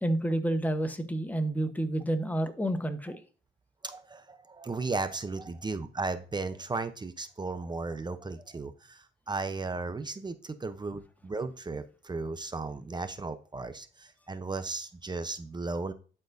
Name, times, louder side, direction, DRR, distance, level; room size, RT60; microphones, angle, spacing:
voice 1, 0.0-3.2, right 1 dB, 10° left, 8 dB, 1.0 m, -29 dB
voice 2, 3.8-15.9, right 3 dB, 20° right, 10 dB, 0.7 m, -35 dB
11.5 x 4.5 x 2.6 m, 0.38 s
cardioid pair, 90°, 20 cm